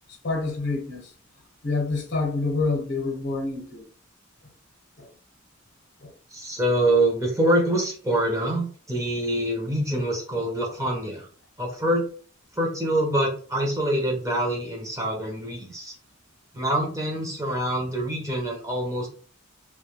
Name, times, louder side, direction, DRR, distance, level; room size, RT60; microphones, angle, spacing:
voice 1, 0.2-1.0 1.6-3.8 5.0-5.1 6.0-6.1, left 3 dB, 55° left, 0.8 m, -27 dB
voice 2, 6.3-11.3 11.6-12.0 12.5-15.9 16.5-19.1, right 1 dB, 15° right, 0.6 m, -25 dB
2.2 x 2.1 x 2.9 m
head